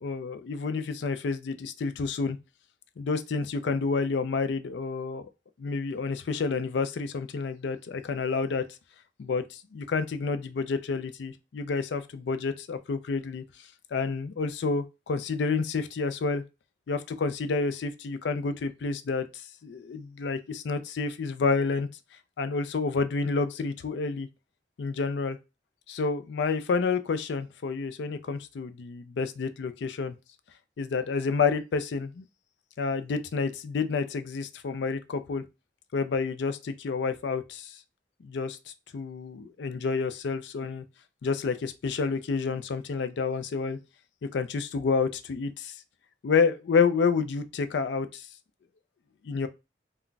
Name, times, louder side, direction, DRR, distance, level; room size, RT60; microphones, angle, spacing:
voice 1, 0.0-2.4 3.0-5.3 5.6-8.7 9.2-13.4 13.9-16.4 16.9-21.9 22.4-24.3 24.8-25.4 25.9-30.2 30.8-32.3 32.8-35.4 35.9-37.8 38.2-38.6 38.9-40.8 41.2-43.8 44.3-45.8 46.2-48.3 49.2-49.5, left 4 dB, 75° left, 0.4 m, -29 dB
2.3 x 2.2 x 3.8 m
head